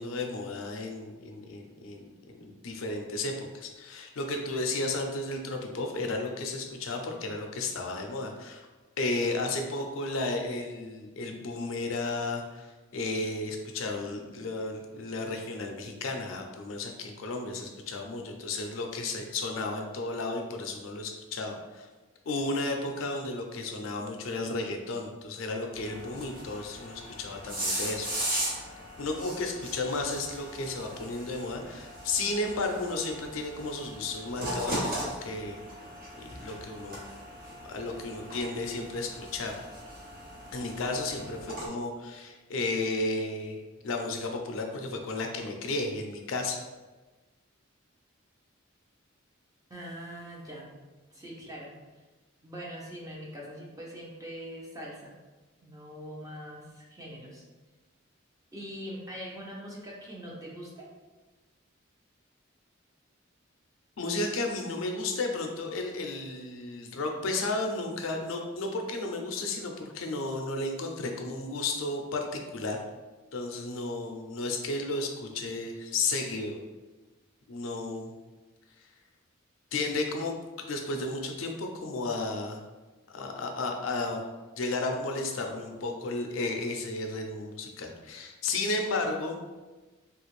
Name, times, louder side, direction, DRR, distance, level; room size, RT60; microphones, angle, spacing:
voice 1, 0.0-8.7 9.0-21.9 22.3-28.4 29.0-35.6 36.2-37.0 37.7-39.6 40.5-46.6 64.0-72.8 73.3-76.6 77.5-78.1 79.7-82.6 83.1-84.2 84.6-89.4, left 2 dB, 75° left, 3 dB, 0.5 m, -33 dB
sound 1, 25.7-41.7, right 1 dB, 45° right, 0.9 m, -38 dB
voice 2, 49.7-50.7 51.1-51.7 52.4-55.2 55.6-57.4 58.5-60.9, equal, 15° right, -4 dB, 0.7 m, -42 dB
3.4 x 2.4 x 3.1 m, 1.2 s
head